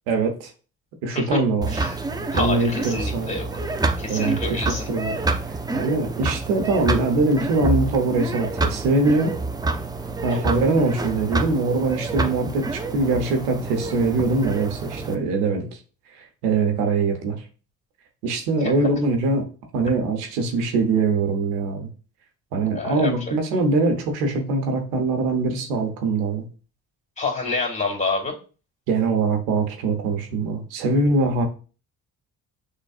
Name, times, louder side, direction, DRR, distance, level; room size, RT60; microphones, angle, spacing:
voice 1, 0.1-0.5 1.0-1.8 2.3-3.3 4.1-9.3 10.2-15.8 16.2-17.4 18.2-19.4 19.7-21.9 22.5-26.5 28.9-31.5, right 3 dB, 85° right, 5 dB, 1.0 m, -23 dB
sound 1, 1.6-15.2, right 3 dB, 10° right, 0.4 m, -27 dB
voice 2, 2.3-3.5 4.0-4.8 10.3-10.4 18.6-18.7 22.7-23.4 27.2-28.3, left 3 dB, 15° left, 0 dB, 2.1 m, -27 dB
6.4 x 2.5 x 2.4 m, 0.36 s
hypercardioid pair, 55°, 46 cm